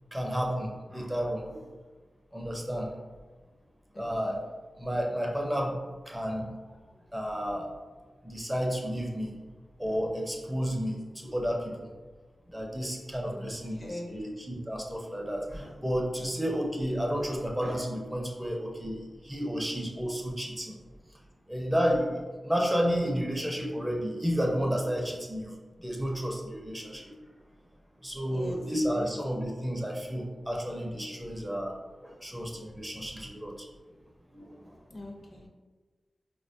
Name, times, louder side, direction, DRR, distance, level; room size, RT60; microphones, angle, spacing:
voice 1, 0.1-1.6 2.3-2.9 4.0-4.4 4.8-5.8 6.1-6.5 7.1-7.7 8.2-9.3 9.8-11.7 12.5-20.8 21.5-27.1 28.0-31.7 32.0-33.5 34.3-34.7, equal, 10° right, 0 dB, 0.5 m, -31 dB
voice 2, 3.9-4.4 13.3-13.5 13.8-14.2 16.2-16.3 28.3-28.6 28.9-29.1 34.9-35.5, left 1 dB, 50° left, 1 dB, 0.5 m, -42 dB
3.8 x 2.2 x 2.6 m, 1.3 s
wide cardioid pair, 75°, 0 cm